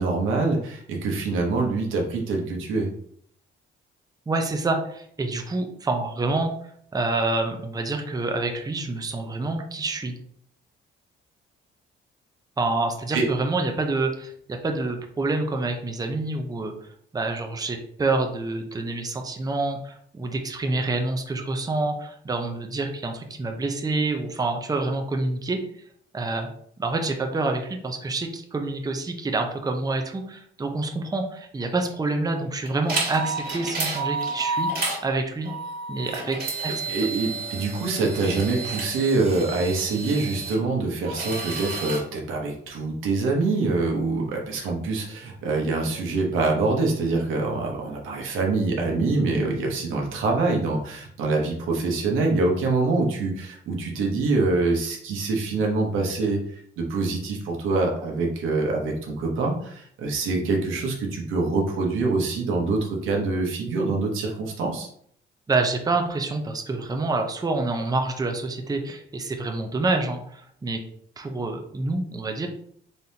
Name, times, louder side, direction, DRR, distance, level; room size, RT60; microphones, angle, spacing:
voice 1, 0.0-2.9 13.1-13.3 36.9-64.9, right 3 dB, 90° right, 0 dB, 1.0 m, -25 dB
voice 2, 4.3-6.5 6.9-10.1 12.6-16.7 17.1-25.6 26.1-26.5 26.8-34.7 35.0-35.5 35.9-37.1 65.5-70.8 71.2-72.5, right 2 dB, 20° right, 3 dB, 0.6 m, -27 dB
sound 1, 32.6-35.0 35.4-40.6 41.0-42.0, right 3 dB, 50° right, 1.7 m, -31 dB
4.2 x 3.5 x 2.8 m, 0.65 s
cardioid pair, 90°, 20 cm